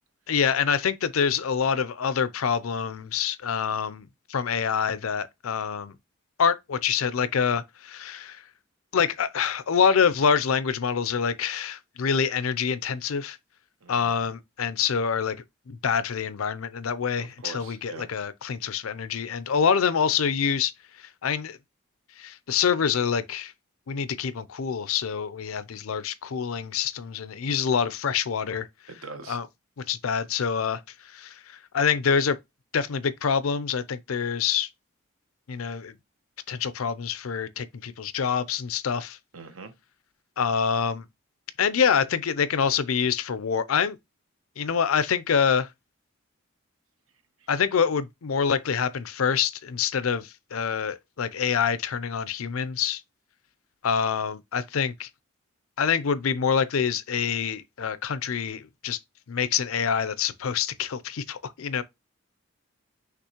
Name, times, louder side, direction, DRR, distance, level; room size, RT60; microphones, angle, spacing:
voice 1, 0.3-5.9 6.4-8.4 8.9-13.4 13.9-15.4 15.7-20.7 21.2-21.6 22.2-23.5 23.9-28.7 29.3-29.5 29.9-30.8 31.1-32.4 32.7-34.7 35.5-35.9 36.5-39.2 40.4-41.1 41.6-44.0 44.6-45.7 47.5-53.0 53.8-55.1 55.8-59.0 59.3-61.8, left 6 dB, 85° left, 0.5 m, -26 dB
voice 2, 13.8-14.3 17.4-18.1 28.9-29.4 39.3-39.7, right 4 dB, 85° right, 1.0 m, -42 dB
5.9 x 3.1 x 2.9 m
head